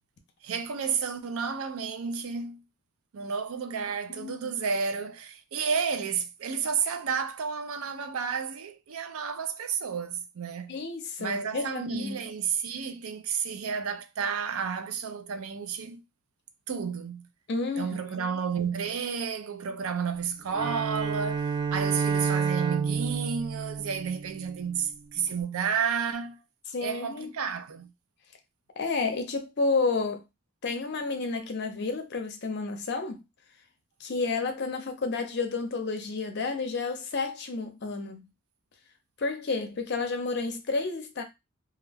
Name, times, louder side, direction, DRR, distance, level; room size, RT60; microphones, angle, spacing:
voice 1, 0.4-2.6 3.1-10.8 11.2-16.0 16.7-17.3 17.8-26.4 26.8-27.9, right 6 dB, 85° right, 0.4 m, -31 dB
voice 2, 4.1-4.5 10.7-12.2 17.5-18.0 26.7-27.3 28.8-30.2 30.6-33.2 34.0-38.3 39.2-41.2, left 3 dB, 55° left, 0.5 m, -31 dB
Bowed string instrument, 20.5-24.7, right 5 dB, 20° right, 0.4 m, -29 dB
2.3 x 2.1 x 3.3 m
head